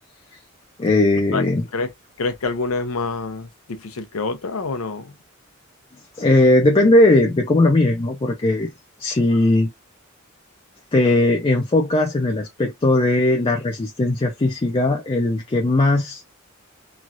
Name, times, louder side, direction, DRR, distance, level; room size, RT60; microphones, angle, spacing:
voice 1, 0.8-1.6 6.2-8.7 9.0-9.7 10.9-16.2, left 2 dB, 25° left, 0.4 m, -18 dB
voice 2, 2.2-5.1, left 3 dB, 80° left, 0.7 m, -26 dB
3.1 x 2.4 x 2.5 m
head